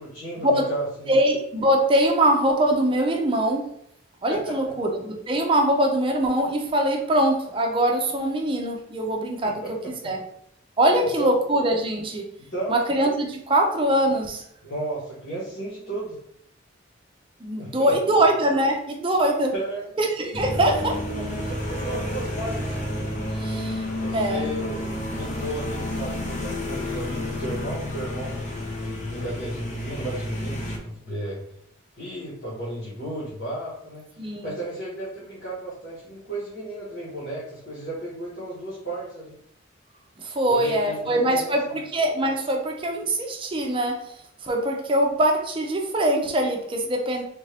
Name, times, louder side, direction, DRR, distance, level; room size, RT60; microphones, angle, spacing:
voice 1, 0.0-1.2 4.3-4.6 9.4-10.1 11.0-11.3 12.5-12.8 14.6-16.2 17.6-18.2 19.5-19.9 21.1-22.7 24.0-31.4 32.0-34.0 34.4-39.4 40.5-41.8, right 1 dB, 60° left, -9 dB, 1.3 m, -34 dB
voice 2, 1.1-3.7 4.2-9.8 10.0-10.2 10.8-12.3 12.7-14.4 17.4-19.5 20.0-21.0 23.4-23.8 24.1-24.5 34.2-34.5 40.2-44.0 44.4-47.2, right 1 dB, 25° right, 2 dB, 0.5 m, -23 dB
sound 1, 20.3-30.8, left 1 dB, 35° left, 0.6 m, -30 dB
3.6 x 2.6 x 3.2 m, 0.69 s
head